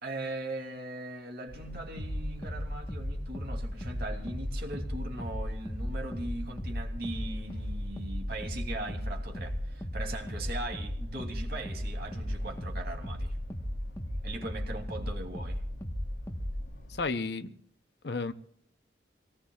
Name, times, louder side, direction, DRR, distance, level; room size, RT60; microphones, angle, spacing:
voice 1, 0.0-13.3 14.2-15.6, right 2 dB, 55° right, 3.0 m, -40 dB
sound 1, 1.5-17.1, equal, 80° left, 4.6 m, -47 dB
sound 2, 2.0-16.7, equal, 15° left, 1.3 m, -36 dB
voice 2, 16.9-17.5 18.0-18.3, left 4 dB, 60° left, 0.7 m, -32 dB
25.5 x 18.5 x 2.4 m
head